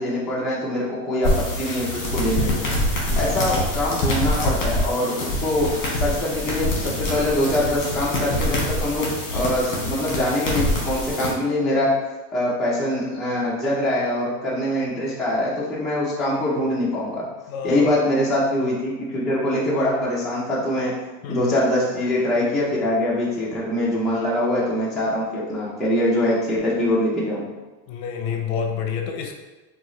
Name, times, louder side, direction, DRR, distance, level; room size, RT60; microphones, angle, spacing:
voice 1, 0.0-2.5 3.2-5.7 6.0-11.9 12.3-17.3 17.6-20.9 21.3-27.4, left 1 dB, ahead, -8 dB, 0.3 m, -23 dB
sound 1, 1.2-11.3, left 1 dB, 30° left, 1.0 m, -25 dB
voice 2, 2.4-3.4 17.5-17.9 21.2-21.6 27.9-29.4, left 7 dB, 55° left, 3 dB, 0.6 m, -29 dB
2.9 x 2.4 x 3.7 m, 1.2 s
supercardioid pair, 145°, 40 cm